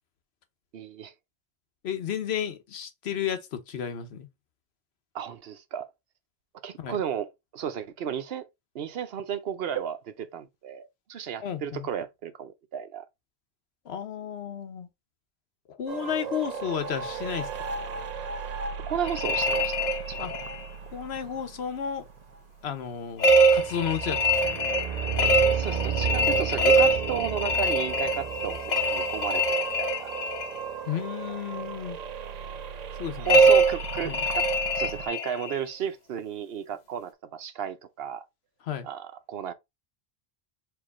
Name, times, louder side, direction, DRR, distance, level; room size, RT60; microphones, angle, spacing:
voice 1, 0.7-1.1 5.1-5.9 6.6-7.3 7.5-8.4 8.7-13.0 18.9-20.3 25.5-29.4 29.8-30.1 33.2-34.5 34.8-38.2 38.8-39.5, right 8 dB, 75° right, 0.9 m, -33 dB
voice 2, 1.8-4.3 6.8-7.0 11.4-11.9 13.8-14.9 15.7-17.5 20.2-20.3 20.9-22.1 22.6-24.6 30.9-32.0 33.0-33.5 34.0-34.2 38.6-38.9, left 8 dB, 85° left, 1.1 m, -33 dB
sound 1, 15.9-35.1, right 7 dB, 55° right, 0.5 m, -35 dB
sound 2, 19.1-20.6 23.2-30.6 33.3-35.6, right 1 dB, 45° left, 0.8 m, -23 dB
4.6 x 2.6 x 3.6 m
omnidirectional pair, 1.0 m